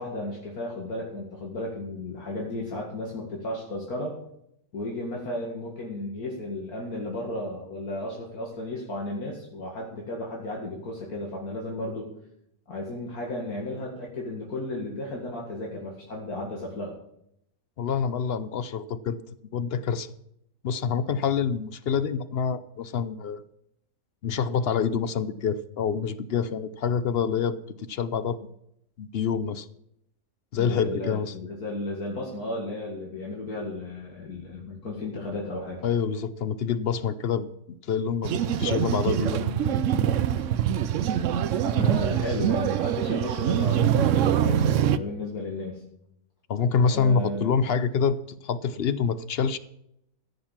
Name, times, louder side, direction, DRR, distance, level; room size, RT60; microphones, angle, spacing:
voice 1, 0.0-4.1 4.7-12.1 12.7-16.9 30.5-35.8 41.6-45.8 46.9-47.5, left 1 dB, 75° left, -2 dB, 2.6 m, -34 dB
voice 2, 17.8-19.2 19.5-20.1 20.6-23.4 24.2-28.4 29.0-29.7 30.5-31.3 35.8-37.5 37.9-39.8 46.5-49.6, left 6 dB, 55° left, 14 dB, 0.7 m, -26 dB
sound 1, 38.2-45.0, right 9 dB, 65° right, 0.9 m, -24 dB
15.0 x 6.6 x 7.3 m, 0.76 s
omnidirectional pair, 1.6 m